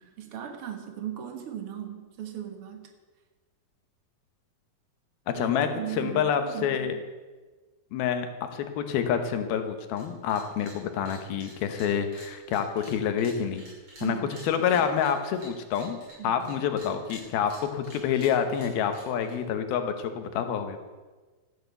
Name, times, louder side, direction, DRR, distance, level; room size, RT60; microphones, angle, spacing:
voice 1, 0.0-2.9 5.3-7.0 14.0-14.8 16.2-16.7, right 10 dB, 55° right, 5 dB, 1.6 m, -38 dB
voice 2, 5.3-5.7 6.0-6.9 7.9-13.6 14.0-14.2 14.4-16.0 16.2-21.0, left 8 dB, 80° left, 7 dB, 3.0 m, -27 dB
sound 1, 9.9-10.0 10.3-10.8 11.0-16.5 16.8-19.3, right 1 dB, 30° right, 6.4 m, -49 dB
14.0 x 8.6 x 8.1 m, 1.3 s
omnidirectional pair, 4.3 m